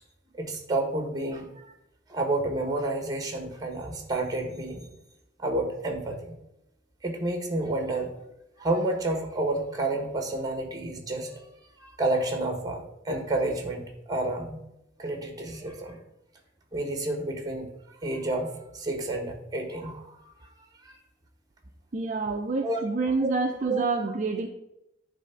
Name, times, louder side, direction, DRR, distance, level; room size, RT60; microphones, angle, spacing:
voice 1, 0.4-1.6 2.1-4.9 5.4-6.2 7.0-8.1 8.6-11.4 11.8-14.6 15.0-16.0 16.7-17.7 18.0-20.2 20.8-20.9 22.6-22.8 23.2-23.3 23.7-23.8, right 2 dB, 20° right, 4 dB, 1.3 m, -30 dB
voice 2, 21.9-24.5, right 3 dB, 40° right, 4 dB, 0.5 m, -28 dB
9.5 x 3.4 x 5.6 m, 0.86 s
head